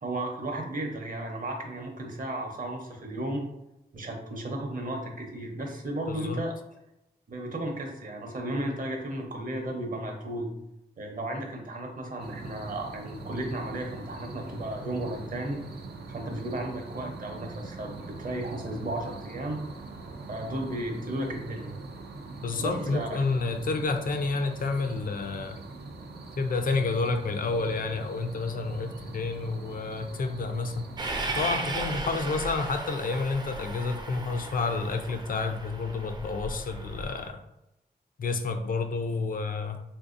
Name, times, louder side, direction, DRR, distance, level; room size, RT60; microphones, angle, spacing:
voice 1, 0.0-3.4 3.9-6.5 7.3-10.5 11.0-15.6 16.1-19.6 20.3-21.7 22.6-23.2, right 1 dB, 55° right, 2 dB, 0.7 m, -34 dB
voice 2, 6.1-6.4 22.4-25.6 26.4-30.9 31.3-37.4 38.2-39.8, left 3 dB, 60° left, 6 dB, 0.4 m, -30 dB
sound 1, 12.2-31.8, right 3 dB, 85° right, 0.4 m, -43 dB
Train, 31.0-37.3, right 2 dB, 25° right, 0.4 m, -36 dB
3.3 x 2.6 x 2.5 m, 0.87 s
cardioid pair, 60°, 17 cm